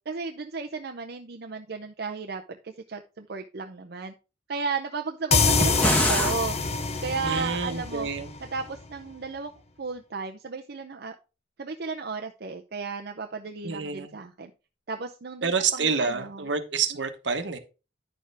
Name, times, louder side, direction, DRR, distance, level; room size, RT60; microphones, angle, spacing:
voice 1, 0.1-4.1 4.5-8.1 8.4-9.5 9.8-11.2 11.6-14.5 14.9-16.5 16.9-17.0, right 4 dB, 60° right, 0.6 m, -34 dB
sound 1, 5.3-8.8, left 4 dB, 35° left, 0.8 m, -26 dB
sound 2, 5.4-6.4, equal, 10° left, 1.4 m, -25 dB
voice 2, 7.2-8.3 13.6-14.1 15.4-17.6, right 5 dB, 75° right, 1.2 m, -28 dB
9.8 x 6.6 x 3.4 m
head